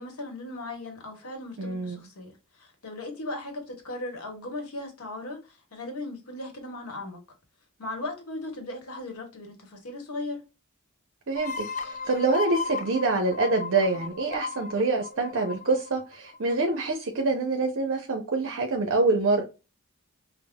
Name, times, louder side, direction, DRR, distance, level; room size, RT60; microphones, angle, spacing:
voice 1, 0.0-7.2 7.8-10.4, left 2 dB, 90° left, 1.0 m, -37 dB
voice 2, 1.6-2.0 11.3-19.4, right 3 dB, 60° right, 0.6 m, -26 dB
sound 1, 11.4-16.8, left 5 dB, 35° left, 0.3 m, -36 dB
5.8 x 2.0 x 2.2 m
head